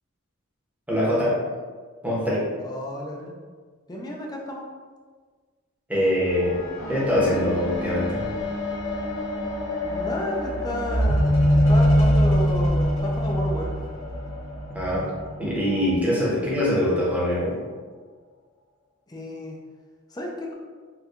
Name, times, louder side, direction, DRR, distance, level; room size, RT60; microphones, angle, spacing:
voice 1, 0.9-1.3 2.0-2.4 5.9-6.6 6.9-8.2 14.7-15.0 15.4-17.5, left 1 dB, 10° right, -7 dB, 0.8 m, -23 dB
voice 2, 2.6-3.3 3.9-4.7 9.8-13.8 19.1-19.6 20.1-20.5, equal, 20° left, -1 dB, 0.4 m, -32 dB
sound 1, 6.3-15.8 16.6-16.7, equal, 70° left, 1.1 m, -24 dB
4.2 x 2.3 x 2.4 m, 1.5 s
head